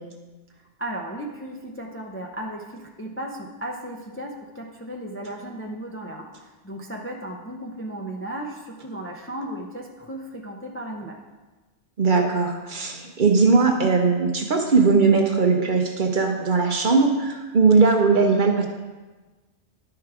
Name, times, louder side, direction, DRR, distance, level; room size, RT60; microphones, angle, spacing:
voice 1, 0.6-11.2, right 1 dB, 15° left, 1 dB, 0.5 m, -35 dB
voice 2, 12.0-18.7, right 4 dB, 45° right, 3 dB, 0.8 m, -19 dB
10.5 x 4.7 x 4.8 m, 1.2 s
omnidirectional pair, 1.2 m